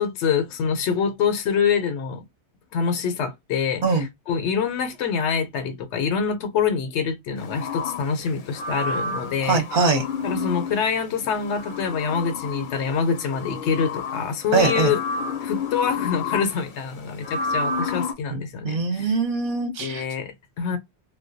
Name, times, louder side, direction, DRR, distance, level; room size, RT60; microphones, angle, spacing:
voice 1, 0.0-2.2 2.7-9.7 10.2-15.0 15.4-19.2 19.8-20.8, left 6 dB, 80° left, 0.9 m, -25 dB
sound 1, 7.4-18.1, left 4 dB, 55° left, 0.7 m, -31 dB
voice 2, 9.4-10.0 14.5-14.9 18.3-20.0, right 4 dB, 50° right, 0.8 m, -22 dB
2.2 x 2.2 x 2.5 m
omnidirectional pair, 1.2 m